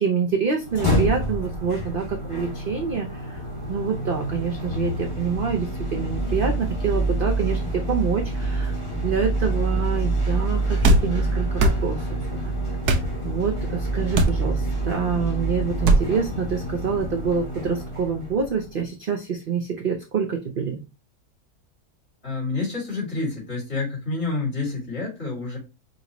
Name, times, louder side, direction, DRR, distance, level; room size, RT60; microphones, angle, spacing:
voice 1, 0.0-3.4 3.7-12.2 13.2-20.8, right 6 dB, 60° right, 3 dB, 0.5 m, -26 dB
sound 1, 0.6-18.7, right 1 dB, 20° left, 1.5 m, -27 dB
sound 2, 10.8-11.1 11.6-11.8 12.8-13.1 14.1-14.4 15.8-16.0, right 2 dB, 80° right, 1.2 m, -18 dB
voice 2, 22.2-25.6, left 3 dB, 40° left, -4 dB, 2.8 m, -28 dB
5.3 x 2.6 x 2.9 m, 0.29 s
omnidirectional pair, 1.7 m